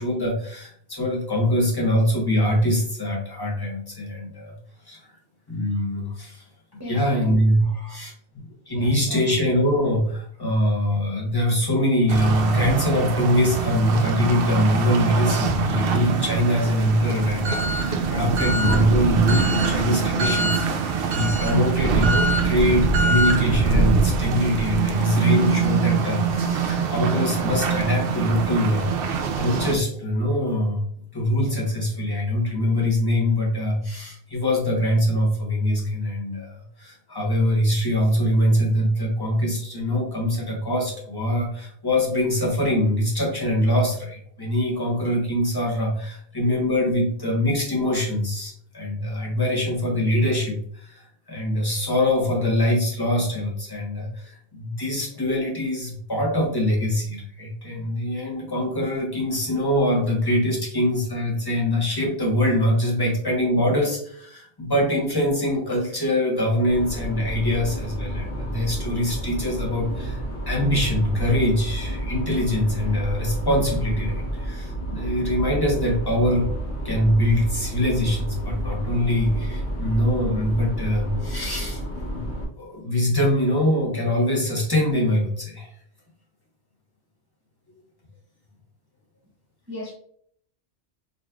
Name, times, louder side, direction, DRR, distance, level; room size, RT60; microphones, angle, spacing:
voice 1, 0.0-4.6 4.8-5.0 5.5-6.4 6.7-7.6 7.9-30.8 31.1-76.5 76.8-81.8 82.1-82.2 82.6-85.7, left 1 dB, 20° left, 1.4 m, -23 dB
voice 2, 6.8-7.3 7.6-8.0 8.7-9.3 89.7-89.9, left 1 dB, 15° right, 0.8 m, -38 dB
sound 1, 12.1-29.7, right 5 dB, 60° right, 0.8 m, -23 dB
sound 2, 66.7-82.4, right 1 dB, 65° left, 1.5 m, -30 dB
5.3 x 3.2 x 2.5 m
omnidirectional pair, 1.2 m